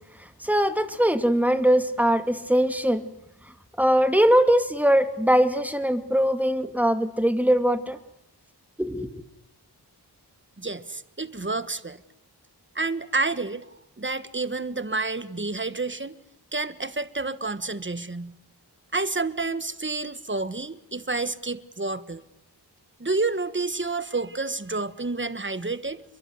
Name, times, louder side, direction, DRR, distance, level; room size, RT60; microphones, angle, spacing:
voice 1, 0.2-3.0 3.8-8.0 8.8-9.2, equal, 5° right, 8 dB, 2.4 m, -21 dB
voice 2, 10.6-12.0 12.7-13.7 14.0-16.1 16.5-18.3 18.9-22.2 23.0-26.0, right 3 dB, 30° right, 13 dB, 1.5 m, -29 dB
30.0 x 23.0 x 8.0 m, 0.82 s
wide cardioid pair, 70°, 40 cm